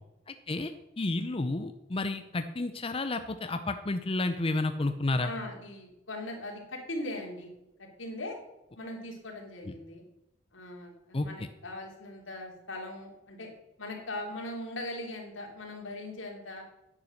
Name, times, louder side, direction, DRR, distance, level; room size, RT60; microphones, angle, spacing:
voice 1, 0.3-5.3 9.6-9.7 11.1-11.5, left 2 dB, 30° left, 9 dB, 0.6 m, -31 dB
voice 2, 5.2-7.5 7.8-8.4 8.8-10.0 10.5-13.5 13.8-16.6, left 1 dB, 90° left, 0 dB, 3.3 m, -40 dB
10.5 x 8.8 x 6.5 m, 0.91 s
head